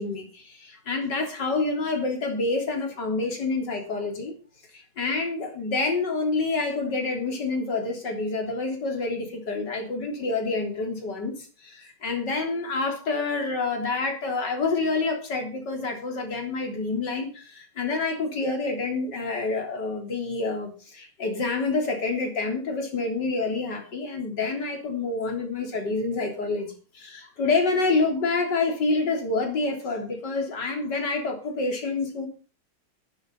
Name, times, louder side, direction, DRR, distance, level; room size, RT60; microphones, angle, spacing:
voice 1, 0.0-4.3 4.7-11.3 11.6-32.3, left 3 dB, 55° left, 3 dB, 4.2 m, -27 dB
12.0 x 12.0 x 5.6 m, 0.36 s
omnidirectional pair, 2.3 m